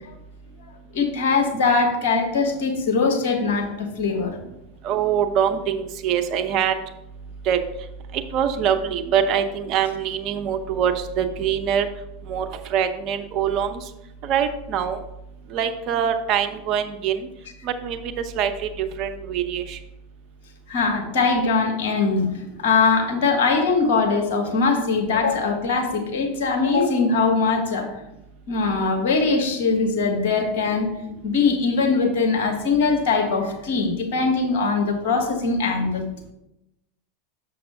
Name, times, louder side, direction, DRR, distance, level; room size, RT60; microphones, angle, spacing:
voice 1, 0.9-4.4 20.7-27.9 28.5-30.9 31.2-36.1, left 4 dB, 60° left, 3 dB, 1.3 m, -21 dB
voice 2, 4.8-6.7 7.5-7.6 8.3-11.9 12.3-12.4 12.7-13.8 14.2-15.0 15.5-17.2 17.6-18.0 18.4-18.5 19.0-19.8, right 8 dB, 45° right, 7 dB, 0.8 m, -23 dB
7.0 x 6.3 x 3.6 m, 0.89 s
hypercardioid pair, 85°, 0 cm